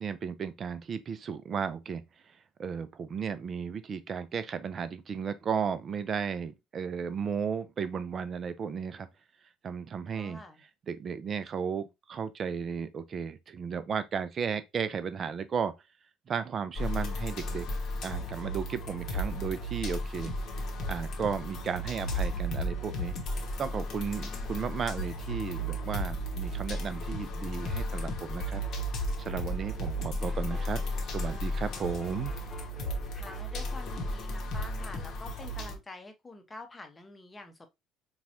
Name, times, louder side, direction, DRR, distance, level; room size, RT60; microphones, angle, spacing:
voice 1, 0.0-2.0 2.6-9.1 9.6-10.4 10.9-15.7 16.3-17.7 18.0-20.3 20.9-28.6 29.2-32.3, right 6 dB, 40° right, 0.4 m, -34 dB
voice 2, 10.1-10.6 24.1-24.6 33.1-37.7, left 2 dB, 20° left, 0.8 m, -47 dB
sound 1, 16.8-35.8, equal, 50° left, 0.8 m, -34 dB
sound 2, 29.0-34.2, right 2 dB, ahead, 1.1 m, -53 dB
3.9 x 2.3 x 2.8 m
figure-of-eight pair, 55°, 0 cm